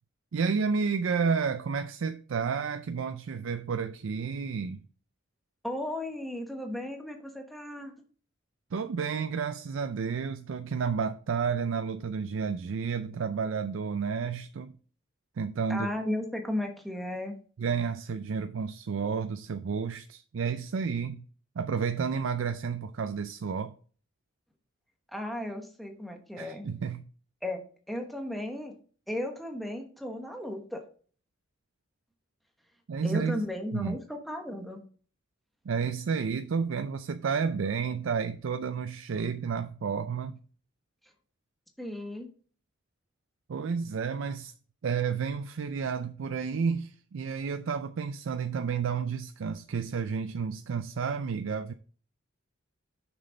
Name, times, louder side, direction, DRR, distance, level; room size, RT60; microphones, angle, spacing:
voice 1, 0.3-4.8 8.7-14.7 15.4-15.9 17.6-21.2 21.6-23.8 26.4-27.1 32.9-33.4 33.7-34.0 35.7-40.4 43.5-44.5 44.8-51.7, right 5 dB, 85° right, 0.4 m, -31 dB
voice 2, 5.6-7.9 15.7-17.4 25.1-26.6 27.4-27.6 27.9-28.7 29.1-30.8 33.0-34.8 41.8-42.3, left 1 dB, ahead, 1.1 m, -35 dB
6.4 x 6.3 x 3.9 m
head